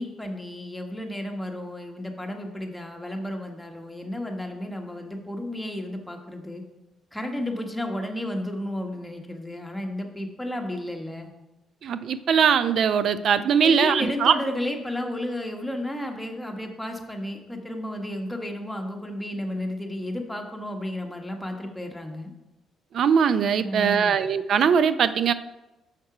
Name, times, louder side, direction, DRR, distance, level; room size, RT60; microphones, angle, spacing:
voice 1, 0.0-6.6 7.1-11.3 13.6-22.3 23.6-24.2, left 1 dB, 5° left, 2 dB, 1.2 m, -32 dB
voice 2, 11.8-14.4 22.9-25.3, right 7 dB, 65° right, 13 dB, 0.4 m, -21 dB
6.6 x 5.3 x 4.9 m, 0.98 s
cardioid pair, 90°, 0 cm